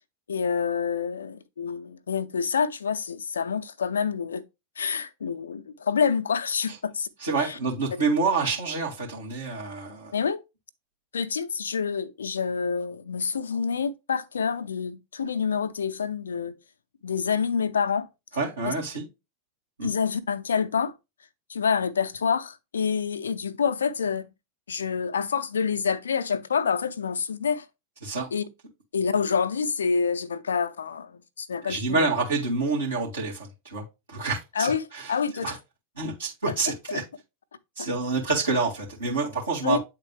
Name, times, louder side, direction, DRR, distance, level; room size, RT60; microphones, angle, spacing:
voice 1, 0.3-4.4 4.8-7.1 7.4-7.6 7.9-8.0 10.1-10.4 11.1-16.5 17.0-18.1 18.7-18.8 19.8-20.9 21.5-24.3 24.7-27.7 28.3-28.4 28.9-32.1 34.5-35.5 36.5-37.0 37.8-37.9 39.6-39.8, left 6 dB, 70° left, 0.5 m, -27 dB
voice 2, 7.2-10.1 18.4-19.0 19.8-19.9 28.0-28.3 31.7-35.1 35.4-35.5 36.0-37.0 37.8-39.8, right 4 dB, 75° right, 2.0 m, -28 dB
8.8 x 3.7 x 3.2 m
figure-of-eight pair, 90°, 0 cm